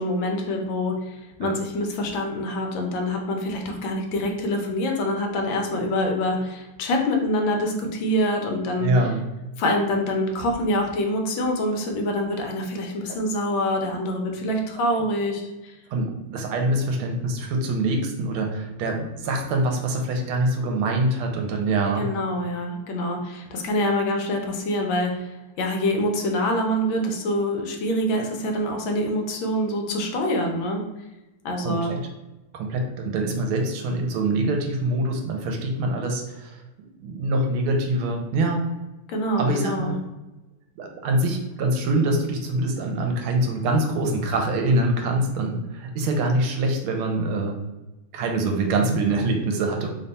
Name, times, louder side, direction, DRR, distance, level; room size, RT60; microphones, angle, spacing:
voice 1, 0.0-8.9 9.6-15.7 22.0-25.3 25.6-30.8 31.4-31.9 39.1-39.9, left 1 dB, 70° left, 2 dB, 1.3 m, -25 dB
voice 2, 8.8-9.2 15.9-22.1 31.6-32.0 32.5-36.6 37.0-38.7 39.4-40.0 40.8-47.6 48.1-49.9, right 2 dB, 85° right, 3 dB, 1.5 m, -24 dB
3.5 x 2.2 x 3.9 m, 1.0 s
omnidirectional pair, 2.4 m